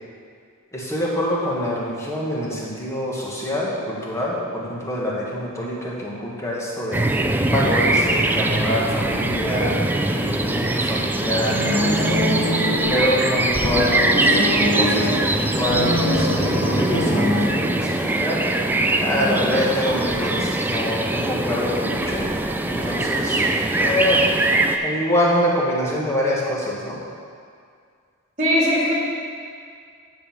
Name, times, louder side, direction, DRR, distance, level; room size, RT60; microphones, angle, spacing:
voice 1, 0.7-7.1 7.5-9.7 10.1-12.2 12.9-14.4 14.7-18.4 19.0-22.3 22.7-23.4 23.7-24.3 24.8-27.0, left 1 dB, 15° left, -5 dB, 1.5 m, -25 dB
sound 1, 6.9-24.8, right 2 dB, 10° right, 0.3 m, -22 dB
voice 2, 9.4-9.7 19.2-19.5 28.4-28.9, equal, 30° right, -5 dB, 2.3 m, -22 dB
sound 2, 11.5-13.0 13.6-15.2 15.7-17.6, left 1 dB, 75° left, 1.5 m, -24 dB
9.8 x 4.0 x 7.1 m, 2.2 s
head